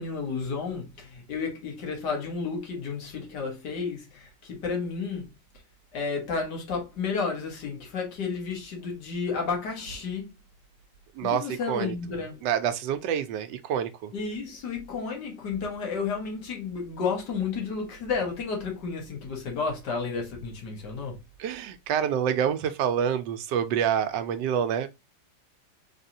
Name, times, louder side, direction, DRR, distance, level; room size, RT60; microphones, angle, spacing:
voice 1, 0.0-5.3 5.9-10.3 11.2-12.4 14.1-21.2, left 5 dB, 70° left, 1.9 m, -32 dB
voice 2, 11.2-11.9 12.4-14.1 21.4-24.9, right 8 dB, 85° right, 1.2 m, -27 dB
3.9 x 3.4 x 2.7 m
omnidirectional pair, 1.9 m